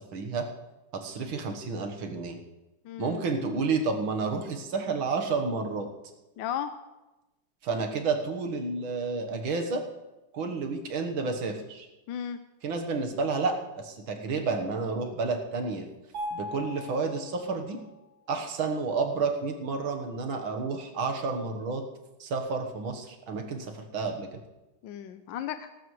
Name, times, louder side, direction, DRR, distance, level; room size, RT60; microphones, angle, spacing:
voice 1, 0.1-0.5 0.9-2.4 3.0-5.9 7.6-9.8 10.3-11.9 12.6-15.9 16.3-17.8 18.3-21.8 22.2-24.3, right 4 dB, 70° right, 4 dB, 2.1 m, -30 dB
voice 2, 2.8-3.2 6.4-6.7 12.1-12.4 24.8-25.7, left 9 dB, 70° left, 9 dB, 1.2 m, -34 dB
Mallet percussion, 16.1-18.1, left 1 dB, 45° right, 2.8 m, -39 dB
18.0 x 14.0 x 3.2 m, 1.0 s
omnidirectional pair, 2.3 m